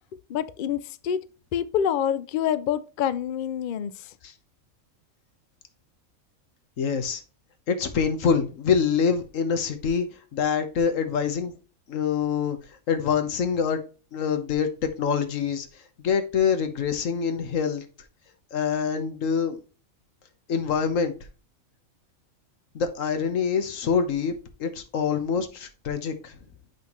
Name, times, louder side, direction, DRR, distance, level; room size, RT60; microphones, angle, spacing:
voice 1, 0.3-1.2 1.5-4.1, left 9 dB, 85° left, 0.4 m, -27 dB
voice 2, 6.8-7.2 7.7-10.1 10.3-11.5 11.9-12.6 12.9-13.8 14.1-15.7 16.0-17.8 18.5-19.6 20.5-21.1 22.7-24.3 24.6-26.4, left 6 dB, 65° left, 1.4 m, -25 dB
7.9 x 5.6 x 3.0 m
omnidirectional pair, 1.5 m